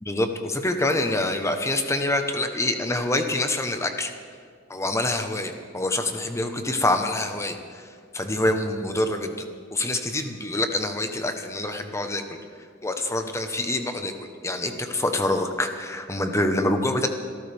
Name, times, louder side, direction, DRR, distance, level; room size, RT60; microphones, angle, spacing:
voice 1, 0.0-4.1 4.7-12.2 12.8-14.1 14.4-17.1, left 1 dB, 15° left, 6 dB, 1.1 m, -26 dB
26.5 x 13.5 x 3.5 m, 2.1 s
head